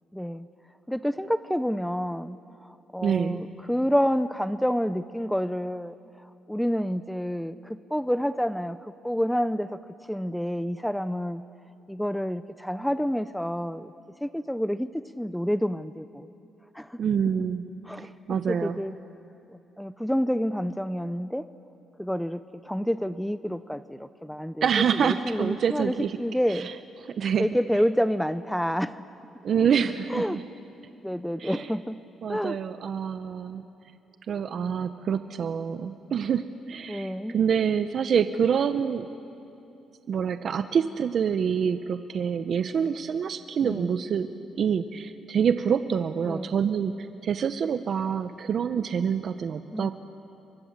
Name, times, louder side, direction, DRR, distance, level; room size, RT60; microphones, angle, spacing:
voice 1, 0.1-0.5 0.9-9.8 10.1-11.4 11.9-13.9 14.2-16.3 16.7-17.0 17.8-18.1 18.5-18.9 19.5-21.5 22.0-26.7 27.4-29.0 30.1-30.4 31.0-32.0 32.3-32.6 36.9-37.3 43.6-43.9 46.3-46.5 49.7-49.9, equal, ahead, 13 dB, 0.6 m, -28 dB
voice 2, 3.0-3.4 17.0-17.7 18.3-18.8 24.6-26.2 26.5-26.7 27.2-27.5 29.4-30.4 31.4-31.7 32.2-33.6 34.3-39.1 40.1-44.3 44.6-46.9 47.2-49.9, right 7 dB, 55° right, 10 dB, 0.9 m, -26 dB
29.0 x 24.0 x 7.4 m, 2.9 s
cardioid pair, 90°, 0 cm